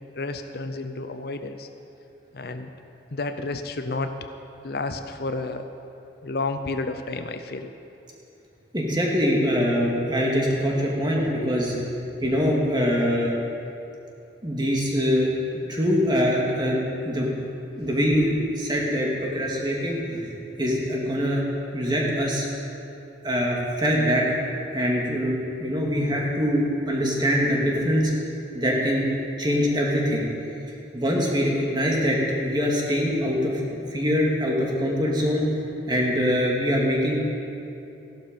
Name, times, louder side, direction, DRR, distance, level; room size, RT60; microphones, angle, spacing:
voice 1, 0.2-1.7 2.3-2.7 3.1-4.1 4.6-5.7 6.2-7.7, left 3 dB, 55° left, 8 dB, 0.7 m, -31 dB
voice 2, 8.7-11.7 12.2-13.3 14.4-15.3 15.7-17.3 17.7-20.3 20.6-21.4 21.7-22.5 23.2-24.2 24.7-28.1 28.5-29.1 29.4-30.3 30.9-35.4 35.9-37.2, equal, 25° right, -2 dB, 2.2 m, -23 dB
16.0 x 12.0 x 5.2 m, 2.8 s
head